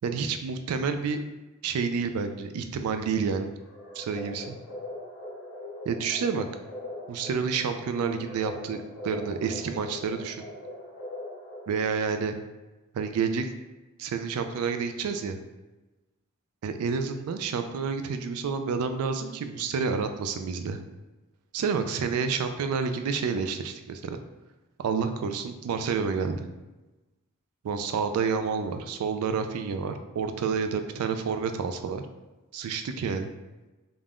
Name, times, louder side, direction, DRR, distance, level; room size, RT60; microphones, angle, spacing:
voice 1, 0.0-1.2 1.6-3.6 4.0-4.6 5.9-6.5 7.1-10.5 11.7-12.4 12.9-13.5 14.0-15.4 16.6-20.8 21.5-24.2 24.8-26.5 27.6-32.0 32.5-33.3, right 5 dB, 85° right, 8 dB, 0.3 m, -29 dB
sound 1, 3.7-12.1, left 1 dB, 90° left, 0.8 m, -41 dB
2.5 x 2.2 x 3.3 m, 1.1 s
head